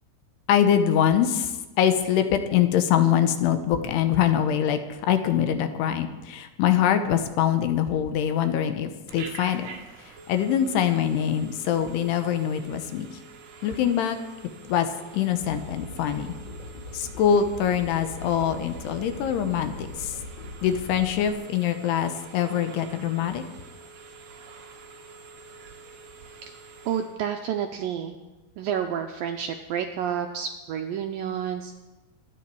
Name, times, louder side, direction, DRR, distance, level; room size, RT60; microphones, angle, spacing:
voice 1, 0.5-9.7 10.0-13.2 13.6-14.2 14.7-16.3 16.9-20.2 20.6-23.4, left 9 dB, 80° left, 8 dB, 3.0 m, -24 dB
Telephone, 9.1-27.2, right 5 dB, 60° right, 2.9 m, -47 dB
sound 1, 15.4-21.3, left 2 dB, 55° left, 4.8 m, -40 dB
voice 2, 26.9-28.2 28.6-31.8, right 8 dB, 85° right, 5 dB, 2.1 m, -30 dB
25.5 x 9.2 x 4.7 m, 1.1 s
omnidirectional pair, 4.8 m